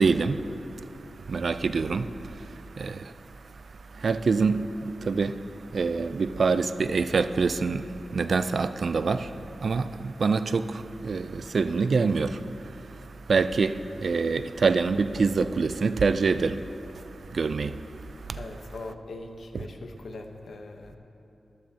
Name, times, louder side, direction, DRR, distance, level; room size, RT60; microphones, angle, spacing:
voice 1, 0.0-18.4, right 4 dB, 60° right, 0.3 m, -27 dB
voice 2, 18.4-21.0, left 2 dB, 75° left, 0.9 m, -41 dB
14.0 x 12.0 x 2.8 m
wide cardioid pair, 105°, 0 cm